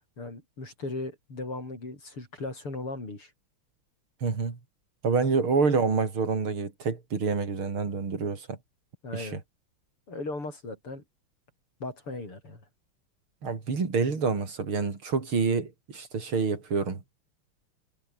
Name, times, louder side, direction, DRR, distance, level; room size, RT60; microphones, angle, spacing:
voice 1, 0.2-3.3 9.0-9.4 10.1-11.0 11.8-12.6, left 2 dB, 85° left, 9.1 m, -37 dB
voice 2, 4.2-4.6 5.0-8.6 9.1-9.4 13.4-17.0, right 4 dB, 70° right, 4.5 m, -27 dB
omnidirectional pair, 2.4 m